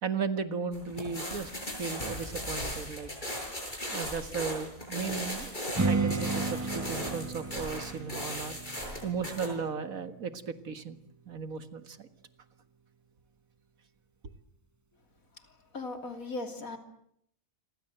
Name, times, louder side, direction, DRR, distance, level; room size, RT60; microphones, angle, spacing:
voice 1, 0.0-1.5 1.8-3.1 3.9-5.6 5.8-8.6 9.0-11.0 11.3-12.1, right 6 dB, 80° right, 11 dB, 2.2 m, -35 dB
sound 1, 0.7-9.5, equal, 35° left, 7.4 m, -37 dB
Strum, 5.7-11.0, right 4 dB, 15° right, 0.9 m, -34 dB
voice 2, 15.7-16.8, left 2 dB, 85° left, 7 dB, 3.6 m, -37 dB
28.5 x 23.5 x 8.0 m, 0.71 s
omnidirectional pair, 1.4 m